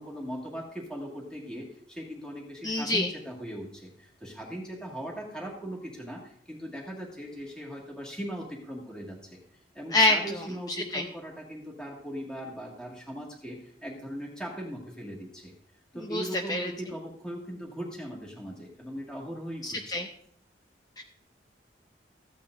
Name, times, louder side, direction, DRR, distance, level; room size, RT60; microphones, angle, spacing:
voice 1, 0.0-9.4 9.7-15.5 15.9-19.8, equal, 5° left, -3 dB, 1.8 m, -39 dB
voice 2, 2.6-3.1 9.9-10.2 10.9-11.0 16.1-16.7 19.6-20.1 21.0-21.1, left 2 dB, 20° left, 4 dB, 0.5 m, -25 dB
14.5 x 8.7 x 2.5 m, 0.63 s
head